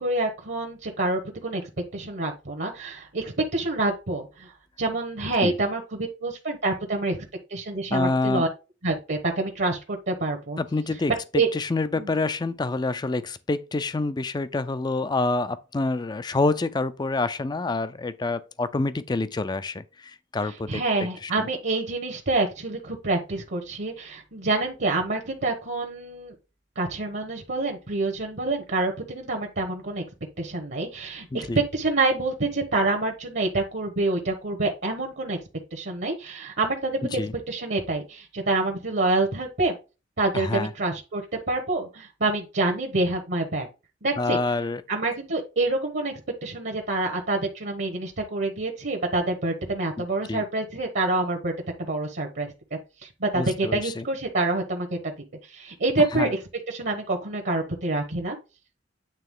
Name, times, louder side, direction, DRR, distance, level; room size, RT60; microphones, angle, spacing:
voice 1, 0.0-1.6 1.9-7.2 7.5-8.5 8.8-10.6 11.3-11.5 12.0-12.2 20.7-26.3 26.8-30.0 30.4-31.5 31.7-35.4 35.7-37.2 37.5-39.8 40.2-41.2 41.5-43.7 44.0-44.4 44.9-51.5 51.9-52.5 53.0-55.1 55.4-56.4 56.7-58.4, right 2 dB, 60° right, 1.1 m, -27 dB
voice 2, 7.9-8.4 10.6-20.8 21.2-21.5 31.3-31.6 37.1-37.3 40.3-40.7 44.2-44.8 50.0-50.4 53.3-54.1 56.0-56.3, left 3 dB, 20° left, 0.4 m, -27 dB
9.0 x 3.4 x 3.6 m
head